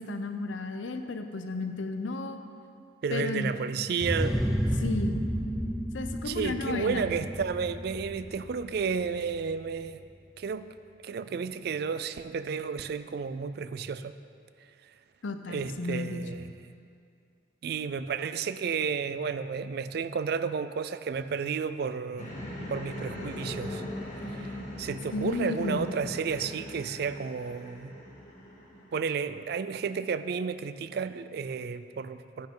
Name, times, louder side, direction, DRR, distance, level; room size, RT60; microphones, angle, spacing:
voice 1, 0.0-2.4 3.1-3.5 4.8-5.2 5.9-7.1 15.2-16.2 25.1-25.9, left 3 dB, 85° left, 7 dB, 0.7 m, -33 dB
voice 2, 3.0-4.4 4.6-4.8 6.2-10.0 10.4-10.7 11.0-14.1 15.5-16.5 17.6-22.3 22.7-23.8 24.4-24.5 24.8-27.9 28.9-32.5, right 5 dB, 55° right, 13 dB, 0.3 m, -32 dB
sound 1, 4.0-9.5, equal, 5° right, 0.5 m, -32 dB
sound 2, 22.2-29.2, left 1 dB, 40° left, 1.9 m, -40 dB
10.5 x 9.4 x 3.8 m, 2.4 s
head